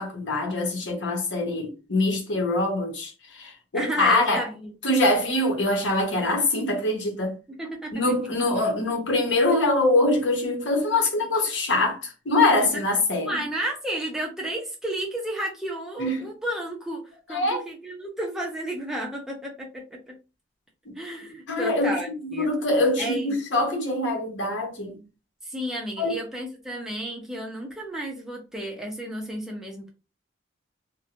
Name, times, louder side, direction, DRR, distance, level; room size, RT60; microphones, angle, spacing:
voice 1, 0.0-4.5 4.8-7.3 7.9-13.5 16.0-16.3 17.3-17.6 20.9-21.0 21.5-25.0 26.0-26.2, left 2 dB, 75° left, 0.9 m, -24 dB
voice 2, 3.7-4.7 6.2-6.3 7.5-7.9 12.6-12.7 13.3-20.2 21.0-22.5 23.0-23.4 25.4-29.9, right 1 dB, 5° right, 0.6 m, -32 dB
2.7 x 2.1 x 2.8 m
head